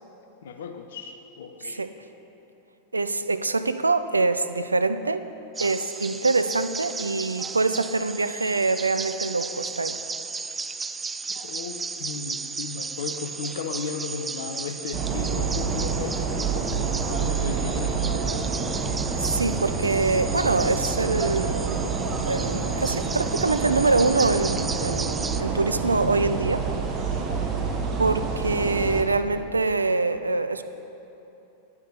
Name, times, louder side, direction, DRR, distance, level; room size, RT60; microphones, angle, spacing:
voice 1, 0.4-1.8 11.3-18.5, left 5 dB, 60° left, 7 dB, 0.7 m, -35 dB
voice 2, 2.9-5.2 5.6-10.0 19.2-21.9 22.3-26.6 28.0-30.6, right 3 dB, 80° right, 11 dB, 0.4 m, -24 dB
sound 1, 5.5-25.4, right 4 dB, 15° right, 0.4 m, -35 dB
sound 2, 14.9-29.0, right 5 dB, 30° right, 1.4 m, -28 dB
9.8 x 9.7 x 6.9 m, 3.0 s
figure-of-eight pair, 90°, 0 cm